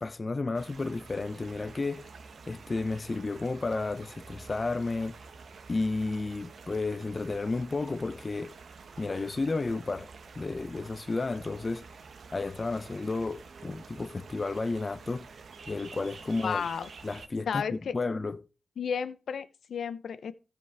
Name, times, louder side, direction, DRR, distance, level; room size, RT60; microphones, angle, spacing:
voice 1, 0.0-2.1 2.5-5.2 5.7-8.5 9.0-10.1 10.4-11.9 12.3-15.3 15.7-16.7 17.0-18.4, left 3 dB, 35° left, 0.7 m, -32 dB
sound 1, 0.5-17.3, right 4 dB, 65° right, 1.0 m, -49 dB
voice 2, 16.4-16.9 17.5-17.9 18.8-20.3, left 6 dB, 75° left, 0.8 m, -32 dB
14.5 x 5.3 x 4.7 m
cardioid pair, 60°, 0 cm